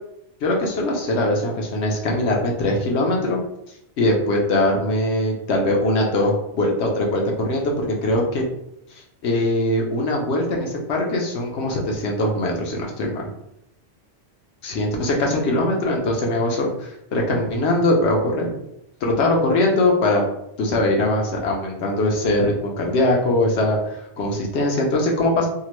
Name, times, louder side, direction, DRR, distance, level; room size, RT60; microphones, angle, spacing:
voice 1, 0.4-3.4 4.0-8.4 9.2-13.3 14.6-18.5 19.0-20.2 20.6-25.5, left 1 dB, 85° left, 0 dB, 1.0 m, -21 dB
2.8 x 2.1 x 2.9 m, 0.78 s
omnidirectional pair, 1.1 m